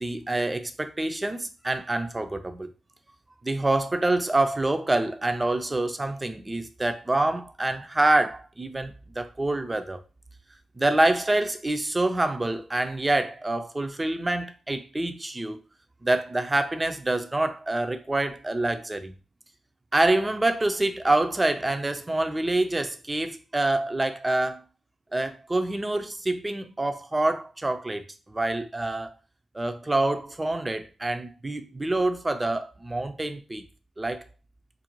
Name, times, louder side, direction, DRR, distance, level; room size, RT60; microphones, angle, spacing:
voice 1, 0.0-2.7 3.4-10.0 10.8-15.6 16.0-19.1 19.9-24.6 25.1-29.1 29.5-33.7 34.0-34.2, right 2 dB, 25° right, 0.5 m, -26 dB
2.5 x 2.1 x 3.0 m
supercardioid pair, 45°, 0 cm